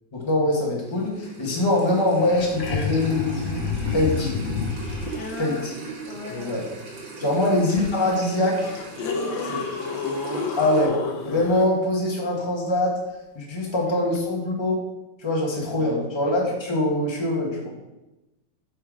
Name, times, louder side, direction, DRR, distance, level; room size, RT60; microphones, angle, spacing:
voice 1, 0.1-3.6 3.9-4.4 5.4-5.7 6.3-6.6 7.2-8.7 10.6-11.0 11.2-13.0 13.3-14.8 15.2-17.7, left 1 dB, 15° left, -2 dB, 1.4 m, -23 dB
sound 1, 0.8-10.9, right 4 dB, 80° right, 2.1 m, -39 dB
sound 2, 1.9-2.0 2.1-5.3 7.8-7.9 8.5-11.6 14.2-14.3, left 5 dB, 90° left, 1.7 m, -29 dB
voice 2, 5.1-5.6 6.0-6.5 7.2-7.4 9.0-9.7 13.6-13.9 15.8-16.0, left 3 dB, 65° left, 0 dB, 1.4 m, -37 dB
7.7 x 5.3 x 4.8 m, 1.0 s
omnidirectional pair, 2.1 m